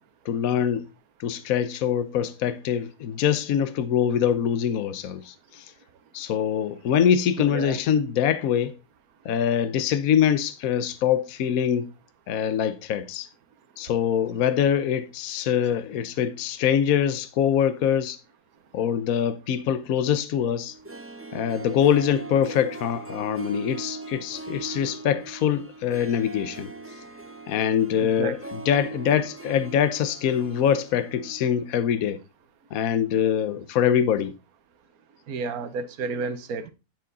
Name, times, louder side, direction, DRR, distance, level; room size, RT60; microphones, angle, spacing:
voice 1, 0.2-0.8 1.2-5.7 6.1-8.7 9.2-11.9 12.3-13.3 13.8-18.2 18.7-20.7 21.3-26.7 27.5-32.2 32.7-34.3, left 9 dB, 65° left, 1.2 m, -24 dB
voice 2, 7.5-7.8 28.0-28.3 35.3-36.7, right 4 dB, 70° right, 1.5 m, -31 dB
Harp, 20.7-31.7 32.0-32.1, right 3 dB, 10° right, 0.7 m, -40 dB
10.0 x 7.7 x 4.0 m
omnidirectional pair, 1.6 m